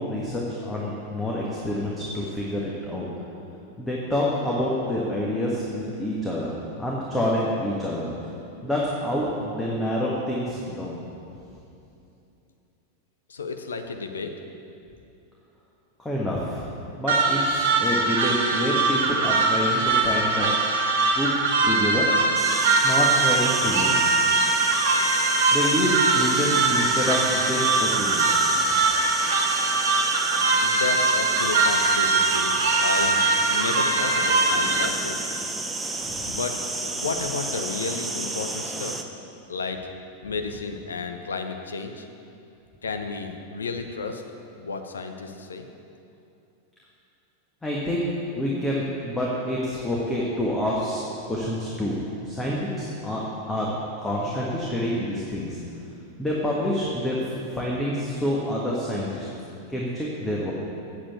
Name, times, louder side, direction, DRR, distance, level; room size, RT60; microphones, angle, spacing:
voice 1, 0.0-3.1 3.8-6.5 6.8-8.1 8.6-11.0 16.0-16.7 17.0-20.5 21.1-21.3 21.6-22.3 22.8-24.0 25.5-28.4 36.1-36.3 47.6-48.1 48.4-52.0 52.2-53.2 53.5-53.7 54.0-55.6 56.2-59.3 59.7-60.5, left 1 dB, 10° left, -5 dB, 1.6 m, -27 dB
voice 2, 13.3-14.4 30.6-33.2 33.5-35.2 36.2-36.6 37.0-39.0 39.5-39.9 40.2-42.1 42.8-44.2 44.6-45.7, left 4 dB, 70° left, 6 dB, 0.9 m, -32 dB
sound 1, 17.1-34.9, right 3 dB, 55° right, 1.2 m, -22 dB
sound 2, 22.3-39.0, right 2 dB, 10° right, 0.7 m, -31 dB
8.6 x 7.4 x 8.1 m, 2.7 s
figure-of-eight pair, 90°, 0 cm